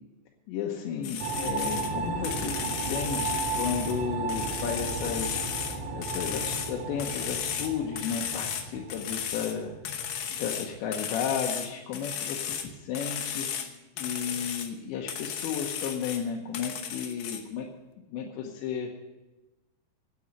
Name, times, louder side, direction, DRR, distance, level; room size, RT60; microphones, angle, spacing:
voice 1, 0.5-5.4 5.9-9.7 10.3-13.5 14.0-17.7 18.1-18.9, left 7 dB, 90° left, 0 dB, 3.3 m, -33 dB
sound 1, 1.0-1.9 2.2-4.0 4.3-6.7 7.0-8.6 8.9-9.6 9.8-12.7 12.9-13.7 14.0-14.7 15.1-16.2 16.5-17.4, left 8 dB, 70° left, 2.1 m, -34 dB
sound 2, 1.2-10.8, right 4 dB, 65° right, 2.0 m, -35 dB
9.9 x 8.6 x 9.3 m, 1.1 s
omnidirectional pair, 5.1 m